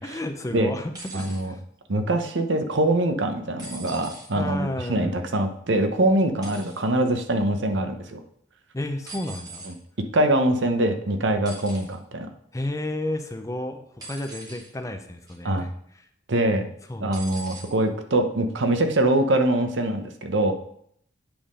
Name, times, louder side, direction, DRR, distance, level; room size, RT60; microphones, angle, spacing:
voice 1, 0.0-1.6 4.3-5.3 8.7-9.6 12.5-16.1 16.9-17.1, left 1 dB, 15° left, 6 dB, 0.6 m, -32 dB
sound 1, 0.9-1.4 3.6-4.3 6.4-6.8 9.1-9.8 11.4-11.9 14.0-14.7 15.3-15.6 17.1-17.7 18.7-18.8, right 2 dB, 20° right, 1.6 m, -41 dB
voice 2, 1.1-1.5 1.9-8.2 9.7-9.8 10.1-12.3 15.4-15.7 16.3-16.7 17.0-20.5, right 1 dB, 70° right, 6 dB, 0.8 m, -23 dB
8.8 x 3.7 x 5.0 m, 0.68 s
head